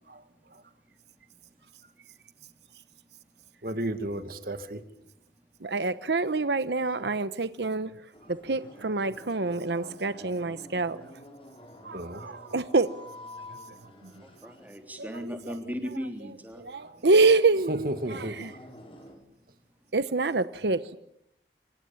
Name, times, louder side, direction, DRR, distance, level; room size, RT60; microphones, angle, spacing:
voice 1, 3.6-4.8 9.8-9.9 11.9-12.2 14.4-14.5 16.8-17.0 17.7-18.4, right 1 dB, 55° right, 9 dB, 2.1 m, -34 dB
voice 2, 5.6-7.9 8.3-11.1 11.8-12.9 15.0-15.1 16.6-18.5 19.9-21.0, right 3 dB, 75° right, 12 dB, 1.0 m, -26 dB
sound 1, 8.1-19.1, left 1 dB, 30° left, 6.1 m, -50 dB
voice 3, 12.4-12.7 14.2-16.6, equal, 10° right, 4 dB, 3.4 m, -37 dB
27.0 x 25.5 x 7.2 m, 0.77 s
head